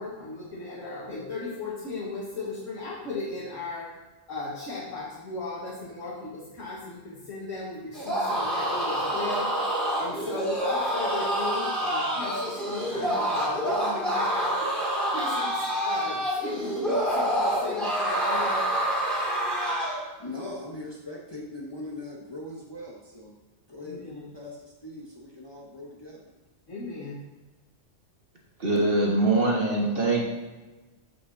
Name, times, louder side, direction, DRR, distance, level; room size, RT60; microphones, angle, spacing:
voice 1, 0.0-3.9 4.3-14.8 15.1-18.7 23.8-24.3 26.7-27.3, left 3 dB, 80° left, -7 dB, 1.8 m, -36 dB
sound 1, 7.9-20.0, equal, ahead, 2.1 m, -27 dB
voice 2, 20.2-23.3 23.7-26.2, left 2 dB, 25° left, -2 dB, 0.8 m, -40 dB
voice 3, 28.6-30.3, right 2 dB, 50° right, -1 dB, 1.5 m, -23 dB
7.9 x 7.0 x 2.7 m, 1.2 s
omnidirectional pair, 1.3 m